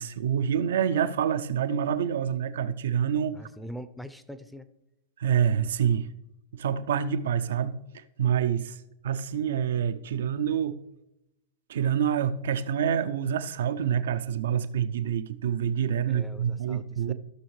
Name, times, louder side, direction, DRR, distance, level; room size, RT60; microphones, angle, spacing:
voice 1, 0.0-3.4 5.2-6.1 6.5-8.8 9.0-10.8 11.7-17.1, right 8 dB, 70° right, 0.5 m, -27 dB
voice 2, 3.3-4.7 16.1-17.1, equal, ahead, 0.6 m, -42 dB
15.5 x 6.3 x 3.2 m
hypercardioid pair, 100°, 0 cm